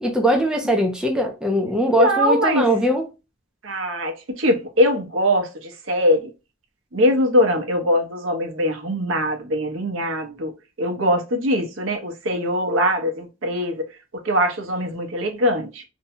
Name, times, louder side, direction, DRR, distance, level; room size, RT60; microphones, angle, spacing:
voice 1, 0.0-3.0, right 1 dB, 5° right, 0.4 m, -21 dB
voice 2, 1.9-2.7 3.6-6.3 6.9-10.5 10.8-13.8 14.1-15.8, equal, 80° right, 0.8 m, -22 dB
2.7 x 2.1 x 2.7 m
head